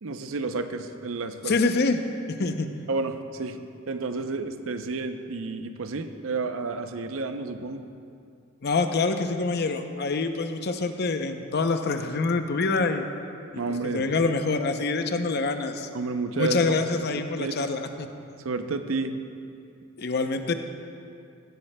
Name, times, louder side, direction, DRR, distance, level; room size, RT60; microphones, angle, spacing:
voice 1, 0.0-1.6 2.9-3.6 3.9-7.9 13.6-14.0 15.9-17.1 17.4-17.5 18.4-19.2, right 3 dB, 80° right, 8 dB, 0.6 m, -31 dB
voice 2, 1.4-2.0 2.4-2.7 8.6-13.1 13.9-15.9 16.4-18.1 20.0-20.5, left 3 dB, 55° left, 7 dB, 0.6 m, -26 dB
16.0 x 11.5 x 2.2 m, 2.5 s
head